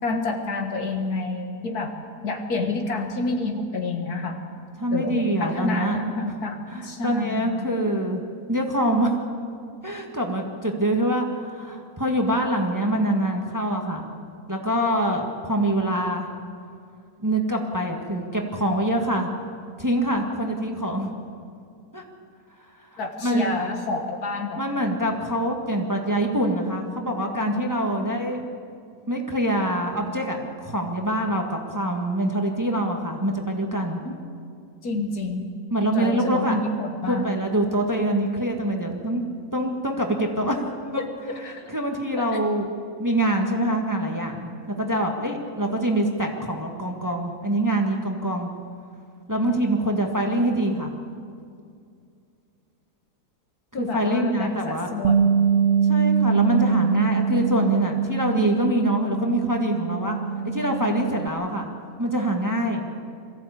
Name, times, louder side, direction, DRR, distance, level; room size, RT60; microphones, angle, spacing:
voice 1, 0.0-1.9 2.2-4.4 4.9-7.6 23.0-24.6 27.8-28.1 34.1-34.2 34.8-35.4 35.9-37.3 41.3-41.6 42.1-42.4 53.7-55.3, left 3 dB, 75° left, 4 dB, 2.2 m, -28 dB
voice 2, 4.8-6.0 6.7-8.2 8.5-9.2 9.8-14.0 14.5-16.3 17.2-19.3 19.8-21.1 21.9-22.0 22.9-23.5 24.6-28.4 29.1-34.0 35.7-36.6 37.1-39.2 39.5-40.6 40.9-41.1 41.5-42.7 43.0-44.5 44.8-48.5 49.3-50.9 53.8-54.9 55.8-60.2 60.4-61.7 62.0-62.8, right 1 dB, 10° right, 1 dB, 1.7 m, -25 dB
Bass guitar, 55.0-61.3, right 6 dB, 60° right, 0.6 m, -23 dB
22.5 x 15.0 x 8.3 m, 2.4 s
omnidirectional pair, 1.7 m